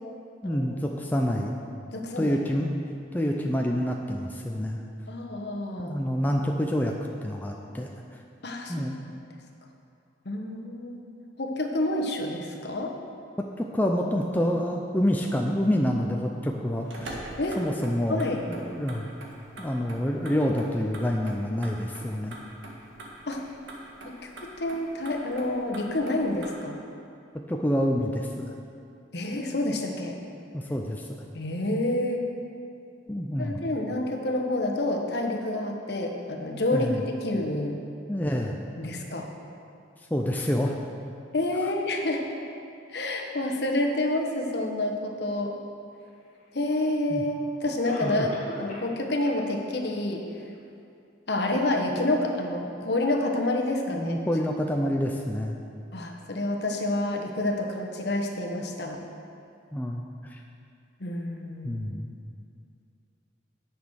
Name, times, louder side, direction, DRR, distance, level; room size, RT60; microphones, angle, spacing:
voice 1, 0.4-1.5 2.2-2.7 3.1-4.8 5.8-6.9 7.2-7.9 8.7-9.0 13.6-17.2 17.6-19.1 19.6-22.4 27.5-28.6 30.5-31.1 33.1-33.6 36.7-37.0 38.1-38.6 40.1-40.7 47.1-47.2 48.0-48.3 53.9-55.6 59.7-60.4 61.6-62.1, equal, 10° left, 0 dB, 0.5 m, -27 dB
voice 2, 1.9-2.4 5.1-6.0 8.4-9.0 10.2-11.0 11.4-12.9 17.4-17.6 18.1-18.4 23.3-23.4 24.2-26.8 29.1-30.2 31.3-32.2 33.4-37.8 38.8-39.3 41.3-42.2 42.9-45.5 46.5-48.3 48.6-50.5 51.3-54.2 55.9-59.0 61.0-61.8, left 1 dB, 60° left, 2 dB, 1.1 m, -28 dB
Motor vehicle (road), 16.7-26.5, right 1 dB, 80° right, 1.7 m, -44 dB
Cough, 46.7-46.8 47.8-49.0 49.2-49.3 49.9-50.0 50.5-50.6, left 1 dB, 40° left, 1.6 m, -40 dB
10.5 x 6.2 x 6.4 m, 2.5 s
head